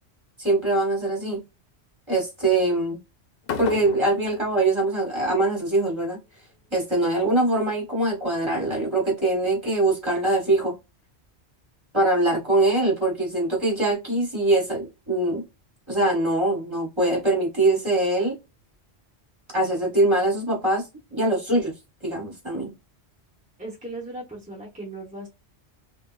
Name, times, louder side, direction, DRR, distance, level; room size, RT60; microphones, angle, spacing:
voice 1, 0.4-1.4 2.1-3.0 3.6-6.2 6.7-10.7 11.9-15.4 15.9-18.3 19.5-21.7 22.0-22.7, right 2 dB, 25° right, 1.2 m, -23 dB
sound 1, 3.4-5.5, left 6 dB, 65° left, 0.7 m, -34 dB
voice 2, 23.6-25.3, right 2 dB, 10° right, 0.6 m, -37 dB
3.4 x 2.2 x 2.3 m
omnidirectional pair, 1.1 m